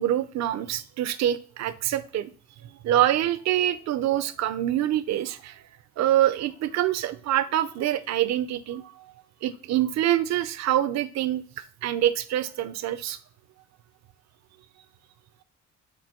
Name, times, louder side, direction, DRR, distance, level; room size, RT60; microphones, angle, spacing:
voice 1, 0.0-2.3 2.8-5.6 6.0-9.1 9.4-11.4 11.8-13.2, right 12 dB, 65° right, 13 dB, 0.5 m, -25 dB
4.5 x 2.5 x 4.3 m, 0.39 s
cardioid pair, 90°, 30 cm